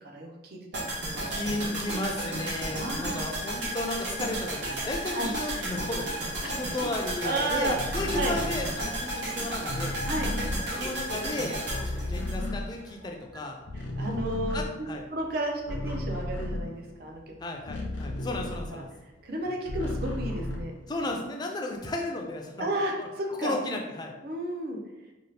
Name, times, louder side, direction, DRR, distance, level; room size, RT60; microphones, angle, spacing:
voice 1, 0.0-1.8 2.8-3.3 5.1-5.3 6.4-6.6 7.2-7.8 8.1-8.3 10.0-10.3 13.7-17.3 18.7-18.8 19.2-20.7 22.6-23.6 24.2-24.8, right 1 dB, 55° right, 1 dB, 0.5 m, -33 dB
sound 1, 0.7-12.9 13.2-13.3, right 1 dB, 70° right, 0.9 m, -33 dB
voice 2, 1.3-10.0 10.7-11.6 11.9-13.6 14.5-15.0 17.4-18.9 19.5-19.6 20.9-22.7 23.0-23.1 23.4-24.1, left 2 dB, 25° left, 2 dB, 0.3 m, -34 dB
sound 2, 7.7-13.3 13.6-19.1 19.4-21.2, left 1 dB, 80° left, 0.5 m, -34 dB
2.7 x 2.3 x 3.2 m, 1.0 s
head